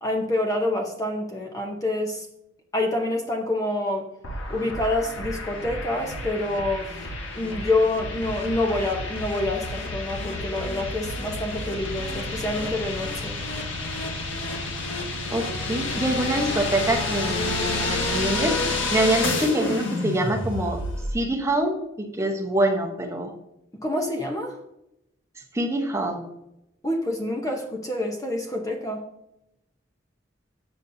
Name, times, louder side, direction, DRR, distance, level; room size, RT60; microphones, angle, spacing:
voice 1, 0.0-2.3 2.7-4.1 4.5-6.9 7.3-13.4 23.8-24.6 26.8-29.1, left 2 dB, 20° left, 2 dB, 0.7 m, -27 dB
sound 1, 4.2-21.1, left 2 dB, 85° left, 1.3 m, -30 dB
voice 2, 15.3-20.8 21.1-21.8 22.2-23.3 25.5-26.2, right 1 dB, 15° right, 2 dB, 0.8 m, -25 dB
7.0 x 6.9 x 2.7 m, 0.84 s
head